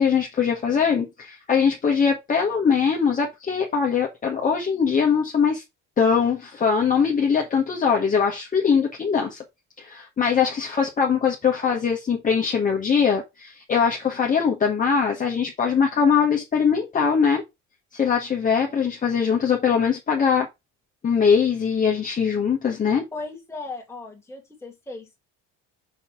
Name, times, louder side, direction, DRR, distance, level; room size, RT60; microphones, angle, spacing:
voice 1, 0.0-5.6 6.0-9.4 9.8-17.4 17.9-20.5 21.0-23.0, left 6 dB, 25° left, 1.4 m, -21 dB
voice 2, 23.1-25.2, left 3 dB, 10° left, 2.3 m, -37 dB
6.4 x 3.3 x 5.9 m
cardioid pair, 145°, 34 cm